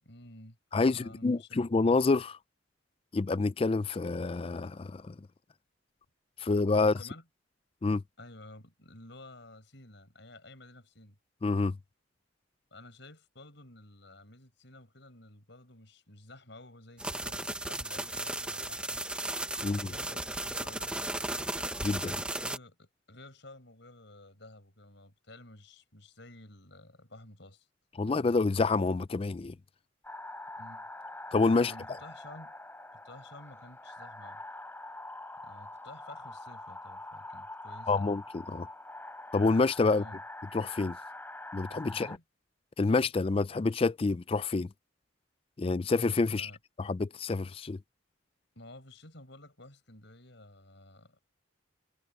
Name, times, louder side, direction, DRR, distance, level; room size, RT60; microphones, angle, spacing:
voice 1, 0.0-0.6 0.8-1.6 6.8-7.2 8.2-11.2 12.7-19.0 19.6-21.5 22.3-27.7 30.6-30.9 31.5-32.5 32.9-34.4 35.4-38.1 39.9-40.2 41.9-42.2 46.3-46.6 48.6-51.2, left 1 dB, 65° left, 6.9 m, -52 dB
voice 2, 0.7-2.4 3.1-5.1 6.4-6.9 7.8-8.0 11.4-11.8 19.6-19.9 21.8-22.2 28.0-29.5 31.3-31.7 37.9-38.7 39.3-40.0 40.5-41.0 41.5-42.1 42.8-44.7 45.6-46.5 46.8-47.8, left 3 dB, 30° left, 0.4 m, -27 dB
sound 1, 17.0-22.6, right 1 dB, 5° right, 0.9 m, -35 dB
sound 2, 30.0-42.2, left 2 dB, 10° left, 7.5 m, -45 dB
head